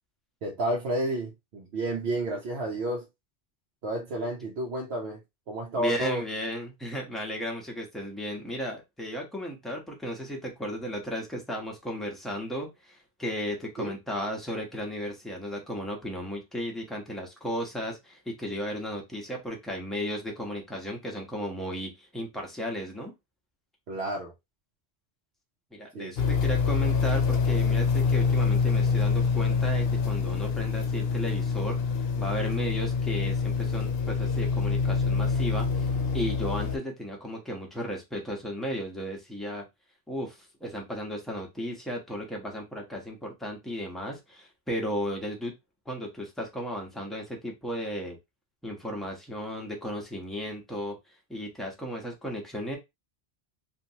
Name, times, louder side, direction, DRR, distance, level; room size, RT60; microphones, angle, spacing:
voice 1, 0.4-3.1 3.8-5.2 5.5-6.2 13.8-14.0 23.9-24.3 25.9-26.4, right 1 dB, 70° right, 0.9 m, -31 dB
voice 2, 5.8-23.1 25.7-35.9 36.1-39.6 40.1-45.5 45.9-48.2 48.6-50.9 51.3-52.8, equal, ahead, 0.8 m, -35 dB
sound 1, 26.2-36.8, left 5 dB, 70° left, 0.8 m, -26 dB
2.9 x 2.6 x 2.7 m
omnidirectional pair, 1.1 m